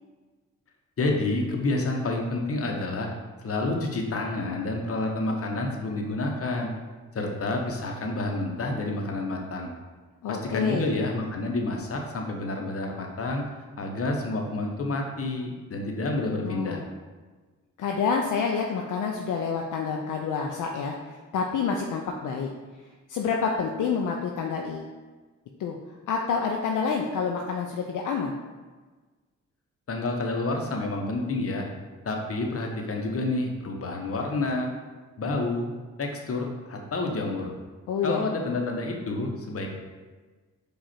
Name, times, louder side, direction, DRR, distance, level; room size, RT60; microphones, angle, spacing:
voice 1, 1.0-3.1 3.4-6.7 7.1-9.7 10.3-13.4 13.8-16.8 29.9-31.7 32.0-34.7 35.2-35.7 36.0-37.5 38.0-39.7, left 2 dB, 45° left, 2 dB, 0.9 m, -29 dB
voice 2, 10.2-10.9 16.4-16.8 17.8-21.0 21.3-22.5 23.1-24.9 25.6-25.8 26.1-28.3 37.9-38.2, left 5 dB, 65° left, 1 dB, 0.5 m, -28 dB
4.8 x 2.5 x 4.3 m, 1.3 s
supercardioid pair, 55°, 33 cm